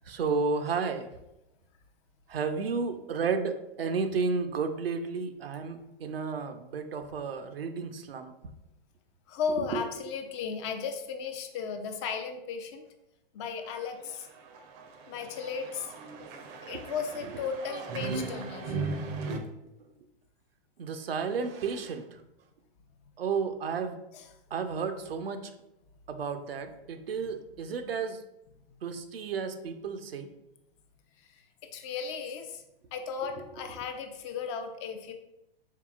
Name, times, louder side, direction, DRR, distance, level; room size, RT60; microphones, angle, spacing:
voice 1, 0.1-1.1 2.3-8.3 9.6-9.8 17.2-17.4 20.8-22.1 23.2-24.0 24.5-25.5 26.1-28.2 28.8-30.3 33.4-33.5, right 5 dB, 80° right, 7 dB, 0.5 m, -32 dB
voice 2, 9.3-12.9 13.3-14.3 15.1-15.9 16.7-18.7 31.7-32.6 32.9-35.1, left 6 dB, 30° left, 6 dB, 0.4 m, -35 dB
sound 1, 13.7-19.4, right 3 dB, 35° right, 0.5 m, -37 dB
4.6 x 3.3 x 2.3 m, 0.87 s
hypercardioid pair, 110°, 29 cm